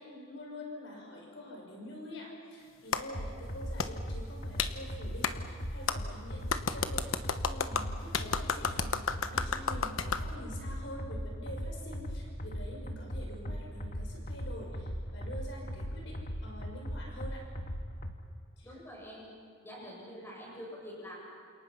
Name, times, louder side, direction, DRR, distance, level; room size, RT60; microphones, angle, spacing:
voice 1, 0.0-9.0 9.3-17.4 18.6-18.8, left 1 dB, 65° left, 0 dB, 5.8 m, -46 dB
Clapping, 2.9-3.0 3.8-3.9 4.6-4.7 5.2-5.3 5.9-6.0 6.5-10.2, left 5 dB, 90° left, 1.2 m, -31 dB
sound 1, 3.1-18.1, equal, 40° left, 1.7 m, -39 dB
voice 2, 18.6-19.3 19.6-21.2, equal, 10° left, -3 dB, 7.5 m, -45 dB
29.0 x 28.0 x 5.8 m, 2.2 s
head